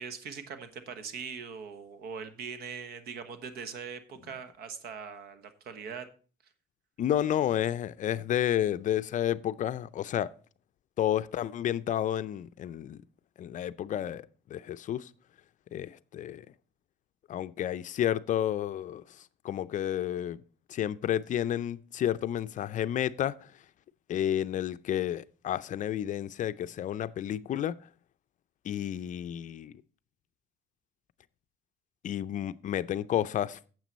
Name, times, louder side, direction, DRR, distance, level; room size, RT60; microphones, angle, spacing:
voice 1, 0.0-6.1, right 6 dB, 70° right, 1.2 m, -41 dB
voice 2, 7.0-10.3 11.0-13.0 13.4-15.1 15.7-16.4 17.3-19.0 19.4-20.4 20.7-23.5 24.1-27.8 28.6-29.7 32.0-33.7, left 11 dB, 50° left, 0.4 m, -31 dB
9.1 x 7.5 x 4.1 m
cardioid pair, 110°, 17 cm